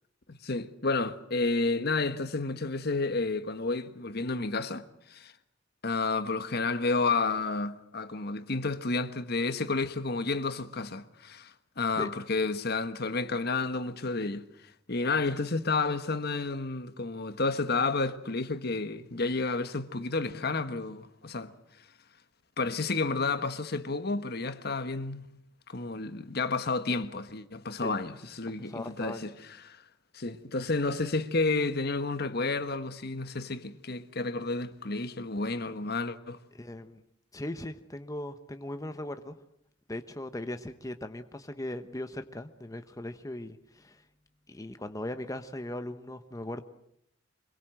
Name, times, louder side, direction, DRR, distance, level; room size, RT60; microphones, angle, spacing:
voice 1, 0.3-5.3 5.8-14.4 14.9-21.5 22.6-25.3 25.7-29.3 29.6-29.8 30.1-36.4, left 3 dB, 55° left, 1.4 m, -31 dB
voice 2, 28.5-29.3 36.5-37.0 37.3-39.4 39.9-44.1 44.5-46.6, left 1 dB, 20° left, 1.0 m, -39 dB
25.0 x 22.0 x 7.7 m
head